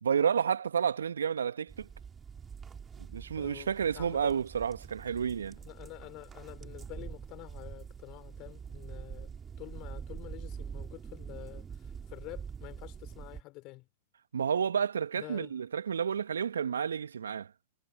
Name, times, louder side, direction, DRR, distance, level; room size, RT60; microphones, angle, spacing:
voice 1, 0.0-1.9 3.0-5.6 14.3-17.5, right 7 dB, 75° right, 1.1 m, -30 dB
sound 1, 1.7-13.4, right 6 dB, 20° right, 4.2 m, -45 dB
voice 2, 3.4-4.4 5.6-9.3 9.6-13.9 15.1-15.5, left 22 dB, 40° left, 3.3 m, -48 dB
figure-of-eight pair, 95°, 0 cm